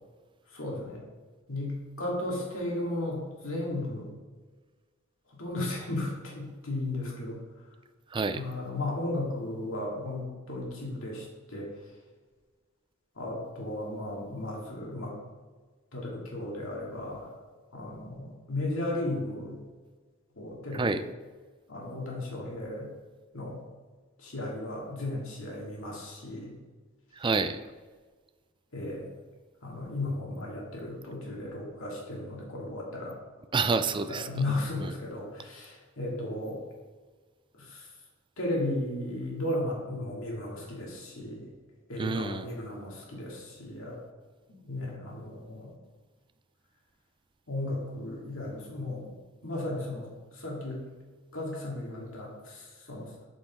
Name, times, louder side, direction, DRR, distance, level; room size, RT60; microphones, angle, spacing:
voice 1, 0.5-1.0 1.5-4.1 5.3-7.4 8.3-11.7 13.2-15.1 15.9-17.3 17.7-19.6 20.4-21.0 21.7-22.9 23.3-23.6 24.2-26.6 28.7-29.1 29.6-33.2 34.1-36.6 37.5-37.9 38.4-41.4 41.9-44.0 44.5-45.7 47.5-49.0 49.4-50.1 50.3-50.8 51.3-53.1, left 1 dB, 75° left, -3 dB, 2.2 m, -35 dB
voice 2, 8.1-8.4 20.7-21.0 27.1-27.6 33.5-34.3 34.8-34.9 42.0-42.5, right 4 dB, 25° right, 11 dB, 0.4 m, -28 dB
8.5 x 5.2 x 3.6 m, 1.4 s
head